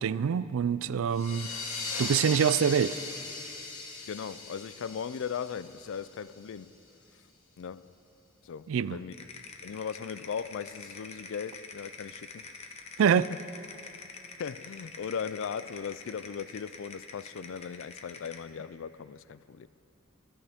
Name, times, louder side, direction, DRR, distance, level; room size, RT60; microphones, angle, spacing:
voice 1, 0.0-1.5 2.0-3.0 8.7-9.0 13.0-13.3, right 7 dB, 75° right, 0.3 m, -25 dB
sound 1, 1.1-6.4, left 3 dB, 85° left, 2.3 m, -38 dB
voice 2, 4.0-6.7 7.6-7.9 8.4-9.3 9.6-12.5 13.2-13.4 14.4-19.7, left 7 dB, 65° left, 0.4 m, -38 dB
sound 2, 9.1-18.5, left 4 dB, 30° left, 0.8 m, -46 dB
25.5 x 11.0 x 3.6 m
head